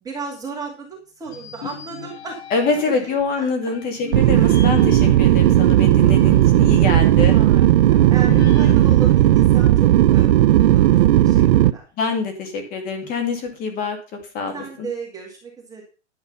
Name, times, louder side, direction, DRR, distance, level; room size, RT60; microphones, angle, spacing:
voice 1, 0.0-2.4 2.8-3.7 4.4-4.7 7.3-7.6 7.9-11.8 14.5-15.8, right 4 dB, 10° right, -1 dB, 2.3 m, -35 dB
sound 1, 1.3-3.1 3.7-6.7 7.1-7.2 8.3-10.3, left 6 dB, 65° left, 4.2 m, -36 dB
voice 2, 2.5-7.4 12.0-14.0 14.3-14.9, left 4 dB, 25° left, 6 dB, 2.3 m, -25 dB
sound 2, 4.1-11.7, right 13 dB, 50° right, 0.6 m, -14 dB
11.5 x 7.9 x 5.5 m, 0.35 s
hypercardioid pair, 155°, 35 cm